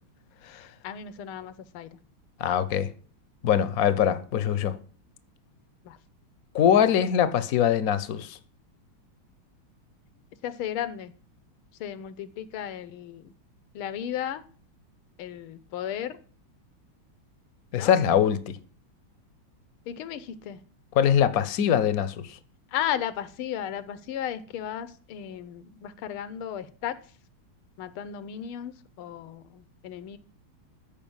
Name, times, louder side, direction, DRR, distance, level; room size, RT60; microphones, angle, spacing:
voice 1, 0.8-1.9 5.9-6.0 10.4-11.1 11.8-13.2 13.7-14.4 15.2-16.2 17.7-17.9 19.9-20.6 22.7-26.9 27.8-28.7 29.0-30.2, left 10 dB, 90° left, 1.7 m, -34 dB
voice 2, 2.4-2.9 3.4-4.8 6.5-8.4 17.7-18.6 20.9-22.4, left 9 dB, 60° left, 1.0 m, -23 dB
14.5 x 5.0 x 7.1 m
omnidirectional pair, 2.3 m